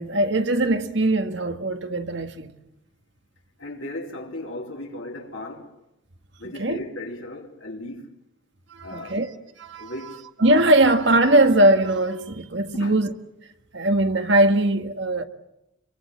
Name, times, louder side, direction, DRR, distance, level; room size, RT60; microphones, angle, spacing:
voice 1, 0.0-2.5 6.4-6.8 8.7-9.3 9.6-9.9 10.4-13.1 13.7-15.2, right 1 dB, 65° right, 1.8 m, -20 dB
voice 2, 3.6-5.7 6.4-8.1 8.8-9.2 9.8-10.2 12.7-13.0, left 1 dB, 85° left, 3.6 m, -36 dB
26.0 x 23.5 x 7.7 m
head